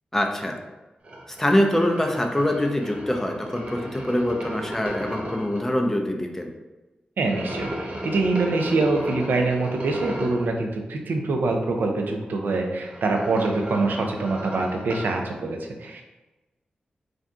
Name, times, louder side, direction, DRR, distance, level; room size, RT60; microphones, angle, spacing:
voice 1, 0.1-0.5 1.4-6.5, left 1 dB, 10° left, 3 dB, 0.4 m, -24 dB
sound 1, 1.0-5.6 7.2-10.4 12.6-15.1, right 1 dB, 40° right, 0.6 m, -36 dB
voice 2, 7.2-16.0, right 3 dB, 85° right, 2 dB, 0.4 m, -25 dB
2.5 x 2.3 x 3.6 m, 1.1 s
wide cardioid pair, 85°, 3 cm